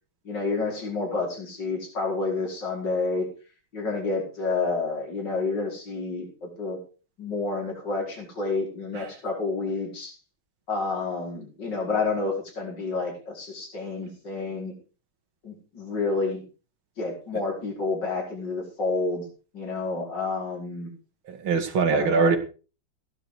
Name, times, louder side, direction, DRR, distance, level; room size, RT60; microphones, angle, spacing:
voice 1, 0.3-3.3 3.7-6.8 7.2-10.1 10.7-14.7 15.4-16.4 17.0-19.2 19.5-20.9 21.9-22.3, left 3 dB, 60° left, -1 dB, 5.5 m, -29 dB
voice 2, 21.3-22.4, right 5 dB, 85° right, 8 dB, 3.0 m, -23 dB
16.0 x 11.0 x 4.8 m, 0.35 s
omnidirectional pair, 2.2 m